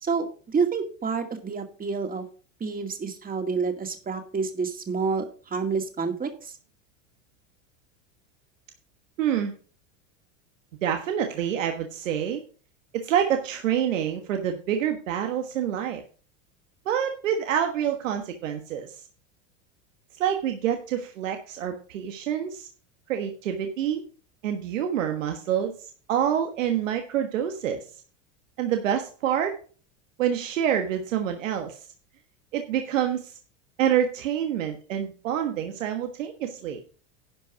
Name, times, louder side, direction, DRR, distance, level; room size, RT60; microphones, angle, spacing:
voice 1, 0.0-2.2 2.6-6.5, right 5 dB, 20° right, 6 dB, 2.2 m, -28 dB
voice 2, 9.2-9.5 10.8-12.4 12.9-16.0 16.8-19.0 20.1-22.7 23.1-24.0 24.4-27.8 28.6-29.6 30.2-31.8 32.5-33.3 33.8-36.8, right 9 dB, 85° right, 6 dB, 1.4 m, -27 dB
11.0 x 5.3 x 6.0 m, 0.40 s
hypercardioid pair, 105°, 38 cm